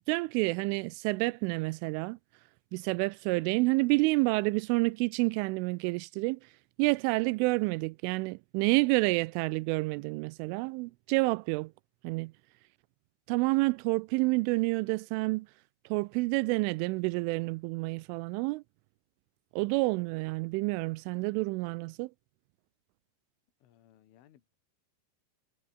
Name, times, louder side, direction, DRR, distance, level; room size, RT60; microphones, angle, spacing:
voice 1, 0.1-2.2 2.7-6.4 6.8-11.7 12.0-12.3 13.3-15.5 15.9-18.6 19.5-22.1, right 24 dB, 85° right, 3.0 m, -29 dB
voice 2, 23.6-24.6, left 12 dB, 80° left, 4.5 m, -62 dB
omnidirectional pair, 5.7 m